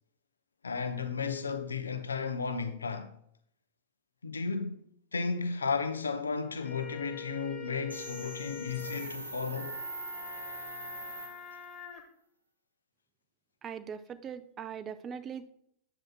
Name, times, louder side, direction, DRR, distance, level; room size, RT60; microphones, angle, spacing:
voice 1, 0.6-3.1 4.2-4.8 5.1-9.8, left 5 dB, 75° left, 0.6 m, -34 dB
sound 1, 6.4-12.0, left 7 dB, 30° left, 1.4 m, -45 dB
sound 2, 7.9-11.8, right 3 dB, 85° right, 1.0 m, -42 dB
voice 2, 13.6-15.5, right 7 dB, 25° right, 0.5 m, -41 dB
9.8 x 7.5 x 2.3 m
figure-of-eight pair, 90°, 0 cm